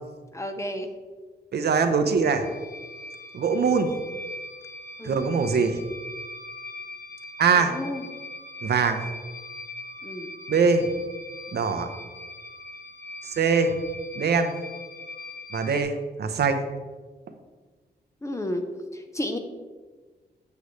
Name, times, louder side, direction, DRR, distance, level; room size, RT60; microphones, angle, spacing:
voice 1, 0.3-0.9 5.0-5.2 7.5-8.1 10.0-10.3 18.2-18.6 18.9-19.4, left 1 dB, 15° left, 6 dB, 0.7 m, -32 dB
voice 2, 1.5-2.4 3.3-3.9 5.0-5.8 7.4-7.7 8.6-9.0 10.5-10.9 11.5-11.9 13.4-13.8 14.2-14.5 15.5-16.6, right 5 dB, 70° right, 6 dB, 0.8 m, -22 dB
sound 1, 2.2-15.8, left 1 dB, 80° left, 1.2 m, -41 dB
8.3 x 6.8 x 3.2 m, 1.4 s
wide cardioid pair, 120°, 17 cm